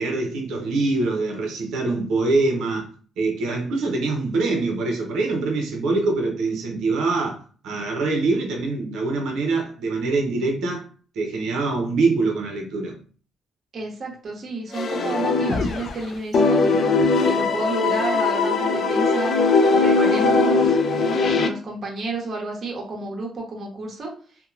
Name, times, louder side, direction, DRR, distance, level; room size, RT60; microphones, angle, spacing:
voice 1, 0.0-2.9 3.2-10.8 11.1-12.9, right 3 dB, 80° right, 0.7 m, -24 dB
voice 2, 13.7-16.8 17.2-19.3 19.8-24.1, right 3 dB, 50° right, 1.0 m, -31 dB
sound 1, 14.7-16.0 16.3-21.5, left 3 dB, 60° left, 0.3 m, -20 dB
2.9 x 2.2 x 2.4 m
cardioid pair, 85°, 0 cm